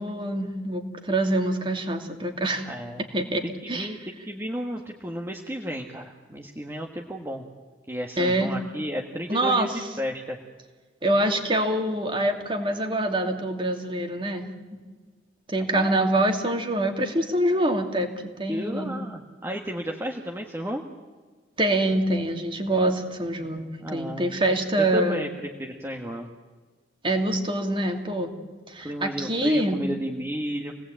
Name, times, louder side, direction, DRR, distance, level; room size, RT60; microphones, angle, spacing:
voice 1, 0.0-2.7 3.1-3.9 8.2-8.5 9.3-9.7 11.0-14.8 15.5-18.1 18.4-18.9 21.6-25.3 27.0-28.3 28.7-29.8, right 1 dB, 30° right, 4 dB, 2.6 m, -25 dB
voice 2, 2.7-3.1 3.6-7.5 7.9-10.4 15.7-15.9 18.5-20.8 23.8-24.3 24.9-25.3 25.6-26.3 28.8-30.7, equal, 15° right, 1 dB, 1.5 m, -33 dB
27.0 x 18.5 x 8.9 m, 1.4 s
head